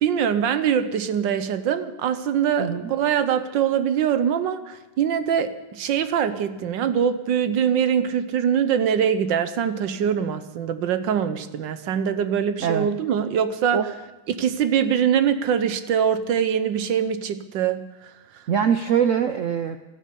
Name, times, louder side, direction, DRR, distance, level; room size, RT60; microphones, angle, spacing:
voice 1, 0.0-13.9 14.3-18.4, right 8 dB, 70° right, 11 dB, 1.5 m, -23 dB
voice 2, 18.5-19.8, right 8 dB, 90° right, 9 dB, 0.6 m, -22 dB
15.5 x 13.0 x 6.8 m, 1.1 s
omnidirectional pair, 2.2 m